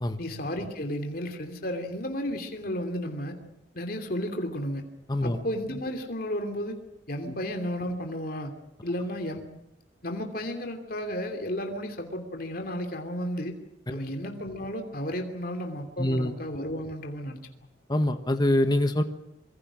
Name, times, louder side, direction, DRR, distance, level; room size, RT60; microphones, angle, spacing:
voice 1, 0.2-3.4 3.7-4.8 5.2-6.8 7.1-8.5 8.8-9.5 10.0-13.6 13.9-17.4, equal, 50° left, 4 dB, 2.9 m, -33 dB
voice 2, 5.1-5.4 7.3-7.4 13.9-14.0 16.0-16.3 17.9-19.0, left 1 dB, 25° left, 7 dB, 1.4 m, -25 dB
26.0 x 23.5 x 6.3 m, 0.83 s
head